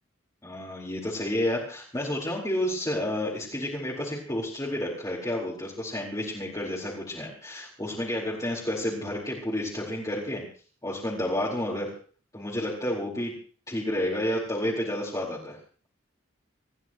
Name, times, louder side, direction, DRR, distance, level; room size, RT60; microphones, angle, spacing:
voice 1, 0.4-10.4 10.8-11.9 12.3-13.3 13.7-15.6, left 1 dB, 15° left, -6 dB, 4.4 m, -30 dB
27.0 x 15.0 x 3.1 m, 0.42 s
head